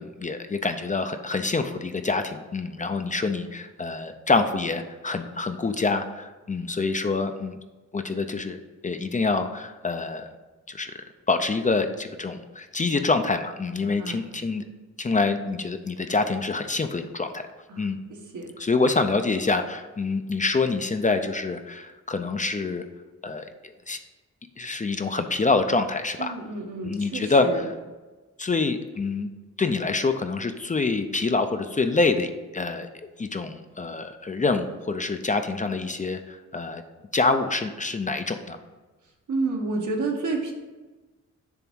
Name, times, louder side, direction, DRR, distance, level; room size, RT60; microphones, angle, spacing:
voice 1, 0.0-7.6 7.9-10.3 10.7-10.9 11.3-14.6 15.0-17.5 17.8-18.0 18.6-22.8 23.2-24.0 24.6-26.3 26.8-27.7 28.4-29.3 29.6-32.9 33.2-36.8 37.1-38.6, left 3 dB, 25° left, 8 dB, 0.4 m, -26 dB
voice 2, 14.0-14.3 17.7-17.9 18.3-18.5 26.2-27.6 39.3-40.5, right 3 dB, 80° right, 0 dB, 1.4 m, -29 dB
7.0 x 3.4 x 6.1 m, 1.2 s
wide cardioid pair, 105°, 30 cm